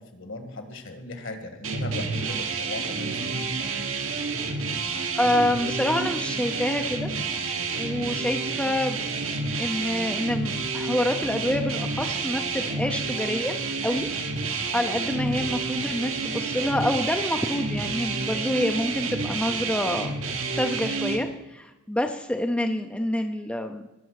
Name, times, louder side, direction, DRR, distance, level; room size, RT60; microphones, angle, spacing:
voice 1, 0.0-3.5, left 2 dB, 60° left, 7 dB, 1.8 m, -37 dB
sound 1, 1.6-21.2, right 4 dB, 70° right, 1.7 m, -29 dB
voice 2, 5.1-7.1 7.8-9.0 9.6-13.6 13.8-14.1 14.7-20.1 20.5-23.9, left 1 dB, 5° left, 5 dB, 0.6 m, -27 dB
20.0 x 6.8 x 6.5 m, 0.98 s
head